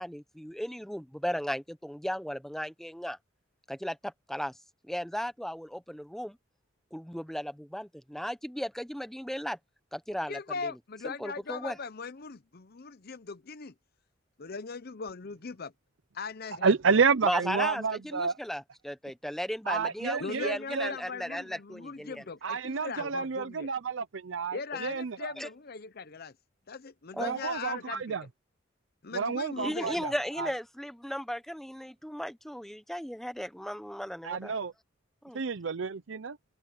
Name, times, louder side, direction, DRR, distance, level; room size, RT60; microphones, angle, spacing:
voice 1, 0.0-3.2 3.7-4.6 4.8-6.4 6.9-9.6 9.9-10.7 11.0-11.8 17.2-22.2 23.0-23.3 25.4-25.5 27.1-27.4 29.6-34.5 35.2-35.4, equal, ahead, 1.0 m, -36 dB
voice 2, 10.3-13.7 14.4-15.7 16.1-17.0 20.2-23.7 24.5-26.3 26.7-28.2 29.0-29.9, left 4 dB, 50° left, 0.8 m, -40 dB
voice 3, 16.6-18.4 19.7-20.9 22.4-25.3 27.2-28.2 29.1-30.1 30.4-30.5 34.2-34.7 35.3-36.4, right 5 dB, 70° right, 0.7 m, -29 dB
open air
head